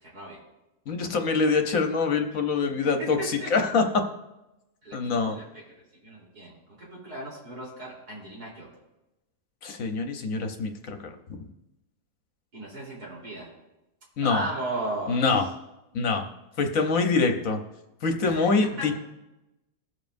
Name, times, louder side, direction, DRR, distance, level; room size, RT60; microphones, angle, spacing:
voice 1, 0.0-0.4 3.2-3.7 4.8-5.6 6.0-8.7 12.5-13.5 14.2-15.2 18.2-18.9, right 1 dB, 85° right, -5 dB, 4.2 m, -36 dB
voice 2, 0.9-4.0 4.9-5.4 9.6-11.1 14.2-14.4 15.1-15.4 15.9-16.2 16.6-17.6 18.0-18.9, left 4 dB, 60° left, 5 dB, 1.3 m, -25 dB
21.5 x 7.3 x 2.6 m, 0.97 s
omnidirectional pair, 1.6 m